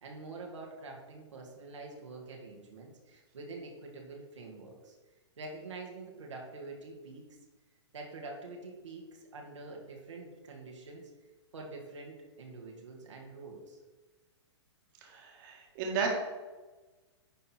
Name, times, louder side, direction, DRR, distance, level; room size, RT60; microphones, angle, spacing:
voice 1, 0.0-5.0 5.4-7.3 7.9-11.1 11.5-13.8, right 3 dB, 85° right, 0 dB, 2.1 m, -46 dB
voice 2, 15.0-16.1, right 5 dB, 45° right, 0 dB, 1.8 m, -33 dB
10.0 x 4.3 x 4.5 m, 1.2 s
hypercardioid pair, 135°, 15 cm